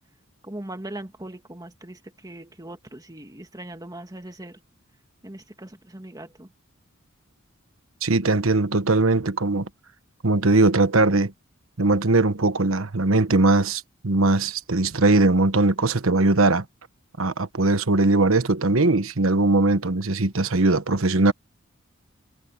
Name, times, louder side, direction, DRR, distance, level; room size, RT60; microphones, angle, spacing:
voice 1, 0.4-4.6 5.2-6.5, right 1 dB, 20° right, 1.9 m, -40 dB
voice 2, 8.0-9.7 10.2-11.3 11.8-16.6 17.2-21.3, right 2 dB, 75° right, 1.3 m, -20 dB
head